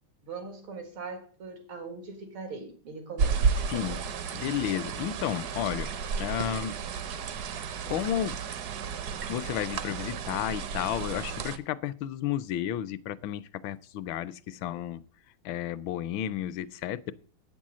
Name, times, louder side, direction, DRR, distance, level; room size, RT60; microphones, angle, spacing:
voice 1, 0.2-4.0, right 4 dB, 90° right, 2.7 m, -41 dB
sound 1, 3.2-11.6, right 6 dB, 65° right, 1.1 m, -32 dB
voice 2, 3.7-4.0 4.3-5.9 6.2-6.8 7.9-8.4 9.3-15.0 15.4-17.1, left 11 dB, 75° left, 1.4 m, -32 dB
8.8 x 6.2 x 7.4 m
omnidirectional pair, 2.2 m